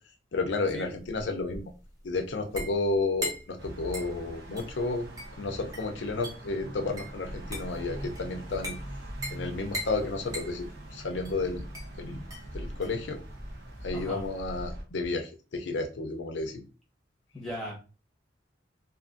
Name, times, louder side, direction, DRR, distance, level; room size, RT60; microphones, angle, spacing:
voice 1, 0.3-1.7 2.0-5.1 5.4-8.8 9.3-11.6 12.0-12.2 12.5-13.2 13.8-16.6, left 3 dB, 70° left, 4 dB, 0.5 m, -32 dB
sound 1, 0.7-14.7, equal, 20° right, 0.7 m, -42 dB
sound 2, 3.6-14.8, right 1 dB, 60° right, 0.7 m, -42 dB
voice 2, 17.3-17.8, equal, ahead, -4 dB, 1.0 m, -37 dB
2.5 x 2.5 x 2.5 m, 0.34 s
head